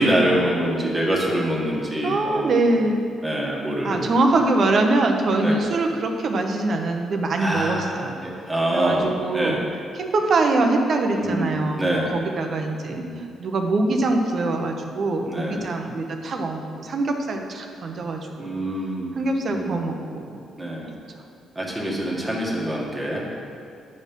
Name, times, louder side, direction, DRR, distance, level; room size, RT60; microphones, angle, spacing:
voice 1, 0.0-2.6 3.2-4.1 5.4-5.6 7.4-9.6 11.1-12.1 12.9-13.2 15.3-15.7 18.4-19.2 19.5-19.8 20.6-20.9 21.5-23.2, right 1 dB, 20° right, -3 dB, 1.5 m, -25 dB
voice 2, 2.0-3.0 3.8-8.1 8.7-9.6 10.0-13.0 13.4-18.5 19.2-20.3, right 2 dB, 55° right, 4 dB, 0.9 m, -23 dB
9.7 x 4.2 x 5.4 m, 2.4 s
cardioid pair, 90°, 0 cm